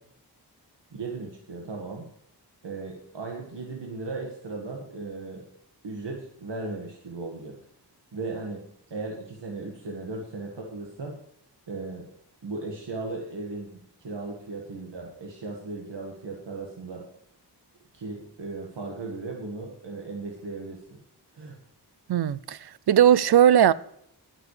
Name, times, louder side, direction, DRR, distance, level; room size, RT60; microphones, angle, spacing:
voice 1, 0.9-2.1 2.6-5.4 5.8-7.6 8.1-8.6 8.9-11.2 11.7-12.1 12.4-17.0 17.9-21.0 21.3-21.6, right 3 dB, 90° right, 1.8 m, -36 dB
voice 2, 22.1-23.7, right 10 dB, 65° right, 0.5 m, -19 dB
18.0 x 7.5 x 3.3 m
wide cardioid pair, 75°, 41 cm